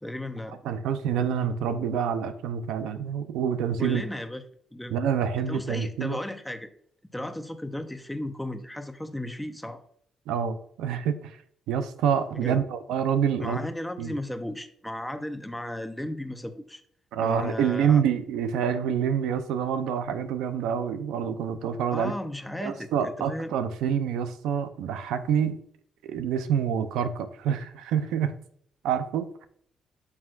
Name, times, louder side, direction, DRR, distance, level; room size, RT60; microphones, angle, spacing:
voice 1, 0.0-0.6 3.8-4.4 4.7-4.9 5.4-6.7 7.1-9.8 12.3-12.6 13.4-16.8 17.2-18.0 21.9-23.5, left 1 dB, 5° left, 8 dB, 0.8 m, -35 dB
voice 2, 0.6-4.0 4.9-6.2 10.3-11.4 11.7-13.7 14.0-14.1 17.1-22.1 22.6-25.6 26.1-28.3 28.8-29.5, right 8 dB, 90° right, 10 dB, 0.6 m, -27 dB
9.4 x 6.0 x 2.5 m, 0.66 s
cardioid pair, 90°, 0 cm